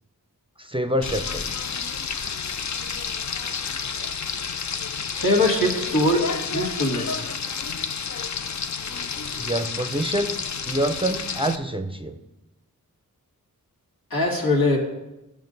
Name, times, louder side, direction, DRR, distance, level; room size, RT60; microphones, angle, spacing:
voice 1, 0.6-1.5 9.4-10.4 10.7-12.2, right 1 dB, 15° right, 8 dB, 0.5 m, -26 dB
Frying (food), 1.0-11.6, left 6 dB, 55° left, 0.5 m, -30 dB
voice 2, 5.2-6.3 6.5-7.3 14.1-14.8, left 1 dB, 80° left, -2 dB, 2.1 m, -21 dB
13.5 x 5.0 x 4.0 m, 0.98 s
wide cardioid pair, 50°, 35 cm